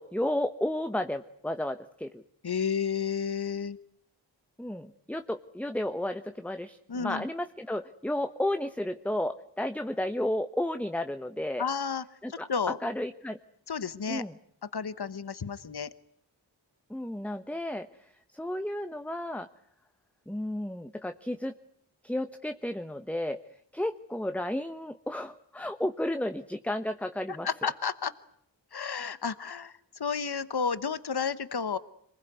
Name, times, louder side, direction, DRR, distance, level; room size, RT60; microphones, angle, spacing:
voice 1, 0.0-2.2 4.6-11.7 12.2-12.5 12.8-13.4 14.1-14.4 16.9-19.5 20.3-21.5 22.0-23.4 23.7-27.5, left 1 dB, 5° left, 9 dB, 1.1 m, -32 dB
voice 2, 2.4-3.8 6.9-7.2 11.6-12.0 12.5-12.8 13.7-14.2 14.7-15.9 27.3-28.1 28.7-29.7 30.0-31.8, left 6 dB, 60° left, 15 dB, 1.1 m, -31 dB
26.5 x 20.5 x 9.4 m, 0.70 s
wide cardioid pair, 65°, 43 cm